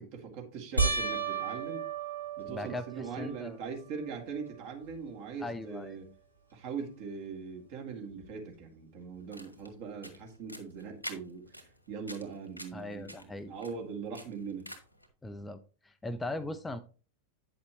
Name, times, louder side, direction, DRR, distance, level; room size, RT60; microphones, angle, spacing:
voice 1, 0.0-1.9 2.4-6.1 6.5-14.7, right 5 dB, 45° right, 3 dB, 2.1 m, -41 dB
sound 1, 0.8-3.4 4.0-4.6 4.9-5.0 8.2-8.3, right 4 dB, 85° right, 1.9 m, -33 dB
voice 2, 2.5-2.8 3.2-3.6 5.4-6.0 12.7-13.5 15.2-16.8, left 2 dB, 10° left, 10 dB, 0.5 m, -39 dB
sound 2, 9.1-15.1, equal, 90° left, 1.5 m, -48 dB
9.5 x 6.6 x 3.0 m, 0.36 s
figure-of-eight pair, 90°, 0 cm